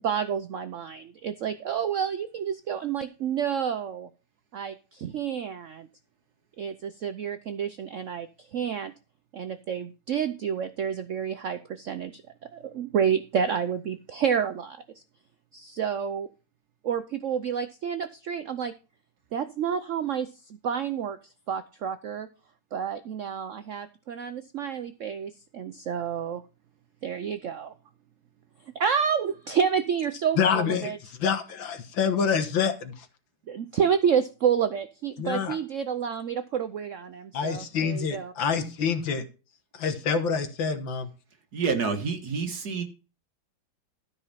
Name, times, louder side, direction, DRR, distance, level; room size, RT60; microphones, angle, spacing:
voice 1, 0.0-4.1 4.5-5.9 6.6-8.9 9.3-12.2 12.5-14.8 15.5-16.3 16.8-18.7 19.3-21.2 21.5-22.3 22.7-26.4 27.0-27.7 28.7-31.0 33.5-38.3, right 7 dB, 75° right, 0.6 m, -29 dB
voice 2, 30.4-30.9 31.2-33.1 35.2-35.6 37.3-39.2 39.7-41.1, left 6 dB, 75° left, 2.1 m, -26 dB
voice 3, 41.5-42.8, right 5 dB, 55° right, 2.0 m, -28 dB
13.0 x 5.3 x 5.7 m
omnidirectional pair, 2.1 m